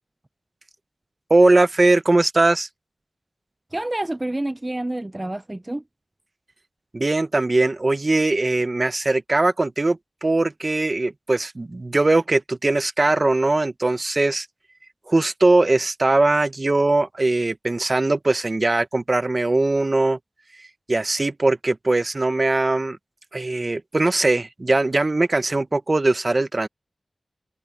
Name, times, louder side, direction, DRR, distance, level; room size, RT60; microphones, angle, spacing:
voice 1, 1.3-2.7 6.9-14.5 15.1-20.2 20.9-23.0 23.3-26.7, right 2 dB, 45° right, 0.8 m, -20 dB
voice 2, 3.7-5.8, right 1 dB, 25° right, 0.4 m, -28 dB
wide cardioid pair, 50°, 0 cm